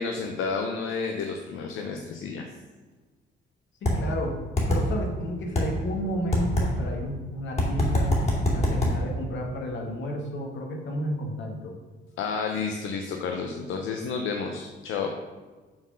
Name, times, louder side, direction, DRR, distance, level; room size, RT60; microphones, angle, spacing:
voice 1, 0.0-2.5 12.2-15.1, left 5 dB, 85° left, 3 dB, 0.7 m, -31 dB
voice 2, 3.8-4.4 4.7-8.2 8.5-11.8, equal, 70° left, 1 dB, 1.7 m, -32 dB
sound 1, 3.9-4.0 4.6-4.8 5.6-5.7 6.3-6.7 7.6-8.9, left 1 dB, 35° left, 2.7 m, -22 dB
7.0 x 4.3 x 6.3 m, 1.3 s
cardioid pair, 90°, 20 cm